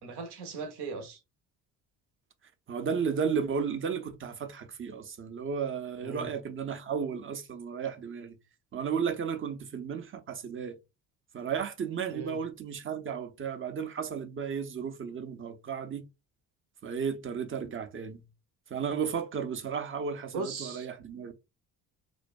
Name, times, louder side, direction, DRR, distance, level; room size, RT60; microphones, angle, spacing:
voice 1, 0.0-1.2 6.0-6.3 12.1-12.4 20.3-20.9, right 4 dB, 70° right, 0.9 m, -38 dB
voice 2, 2.7-8.4 8.7-10.8 11.3-16.1 16.8-18.3 18.7-21.3, right 6 dB, 30° right, 0.6 m, -34 dB
2.4 x 2.2 x 2.4 m
hypercardioid pair, 60°, 41 cm